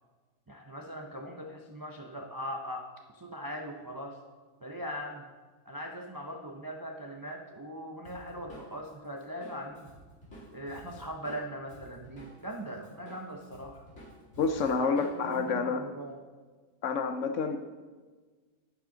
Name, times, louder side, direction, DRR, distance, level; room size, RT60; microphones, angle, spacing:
voice 1, 0.5-4.2 4.6-5.2 5.7-9.9 10.5-13.8 14.7-16.2, equal, 35° right, 2 dB, 0.3 m, -40 dB
Drum kit, 8.0-12.6 12.8-15.4, equal, 45° left, 3.8 m, -51 dB
voice 2, 14.4-15.9 16.8-17.6, left 5 dB, 65° left, 7 dB, 0.8 m, -28 dB
11.0 x 8.7 x 3.9 m, 1.4 s
omnidirectional pair, 1.6 m